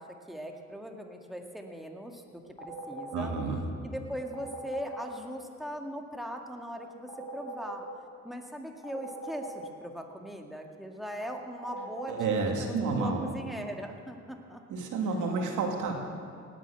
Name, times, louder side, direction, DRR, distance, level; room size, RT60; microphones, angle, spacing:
voice 1, 0.0-3.3 3.8-7.9 8.2-14.6, equal, ahead, 2 dB, 2.0 m, -40 dB
sound 1, 2.6-3.3 4.3-5.1 7.1-7.8 8.8-9.6 11.6-12.3, right 1 dB, 15° left, 2.9 m, -40 dB
voice 2, 3.1-3.6 12.1-13.2 14.7-15.9, right 4 dB, 80° right, 2 dB, 2.6 m, -30 dB
18.5 x 9.3 x 8.2 m, 2.4 s
cardioid pair, 90°, 30 cm